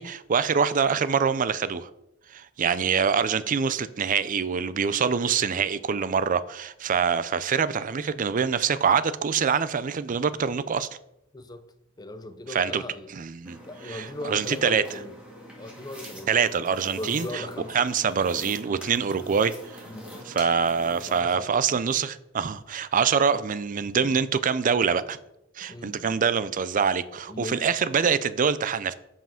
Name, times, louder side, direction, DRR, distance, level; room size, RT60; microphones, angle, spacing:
voice 1, 0.0-1.9 2.3-10.9 12.5-12.8 13.1-13.6 13.9-14.8 16.3-17.4 17.7-19.8 20.3-25.2 25.6-28.9, right 6 dB, 40° right, 0.4 m, -25 dB
voice 2, 11.3-11.6 12.0-13.1 13.6-15.2 15.6-16.4 17.0-17.9 19.8-20.1 21.1-21.9 25.7-26.2 27.3-27.7, left 1 dB, 20° left, 0.6 m, -38 dB
sound 1, 13.4-21.2, equal, 5° right, 2.0 m, -44 dB
7.3 x 5.6 x 5.7 m
head